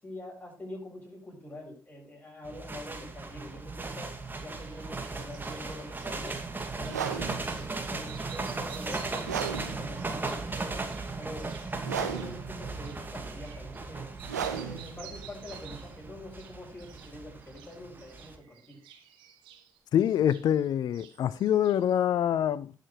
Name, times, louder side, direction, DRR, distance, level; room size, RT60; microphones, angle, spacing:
voice 1, 0.0-4.1 4.4-6.4 6.8-10.9 11.2-11.5 11.8-14.1 14.5-18.8, left 1 dB, 20° left, 7.5 m, -45 dB
sound 1, 2.4-18.4, right 3 dB, 20° right, 2.3 m, -37 dB
sound 2, 4.7-7.0 7.4-7.7 8.0-13.9 14.1-16.0 16.3-17.1 17.4-20.7 20.9-22.0, right 10 dB, 65° right, 1.7 m, -52 dB
sound 3, 6.8-16.7, right 7 dB, 85° right, 1.0 m, -37 dB
voice 2, 19.9-22.7, left 10 dB, 50° left, 0.4 m, -25 dB
19.0 x 6.6 x 3.2 m
figure-of-eight pair, 40°, 9 cm